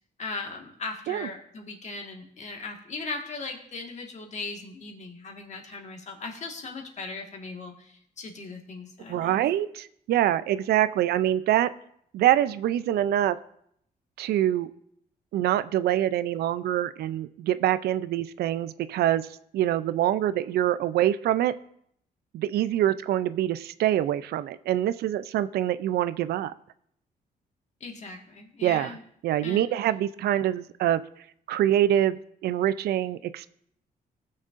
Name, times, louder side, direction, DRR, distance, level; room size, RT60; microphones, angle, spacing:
voice 1, 0.2-9.4 27.8-29.0 29.4-29.7, left 3 dB, 45° left, 2 dB, 1.6 m, -38 dB
voice 2, 9.1-11.7 12.1-13.4 14.2-14.7 15.3-19.3 19.5-21.5 22.3-26.5 28.6-29.0 29.2-31.0 31.5-33.5, right 12 dB, 85° right, 14 dB, 0.4 m, -25 dB
19.0 x 6.4 x 2.5 m, 0.70 s
cardioid pair, 115°, 16 cm